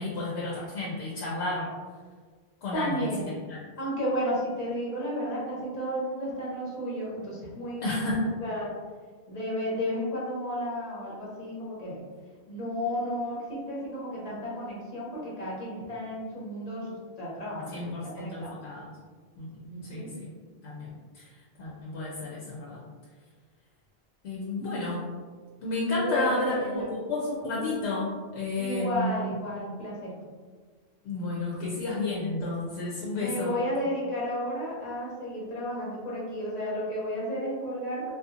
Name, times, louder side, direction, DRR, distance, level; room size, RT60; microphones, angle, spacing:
voice 1, 0.0-1.7 2.6-3.6 7.8-8.3 17.7-18.9 19.4-19.5 19.8-20.3 20.6-20.9 21.1-21.3 21.6-22.8 24.2-25.0 25.6-29.3 31.0-33.6, left 2 dB, 80° left, -5 dB, 0.9 m, -31 dB
voice 2, 2.7-3.3 3.8-7.9 8.4-8.7 9.3-12.0 12.5-18.5 19.7-20.1 25.9-26.9 28.6-30.2 33.1-38.1, equal, 40° left, -6 dB, 0.8 m, -33 dB
2.7 x 2.3 x 2.4 m, 1.5 s
omnidirectional pair, 1.1 m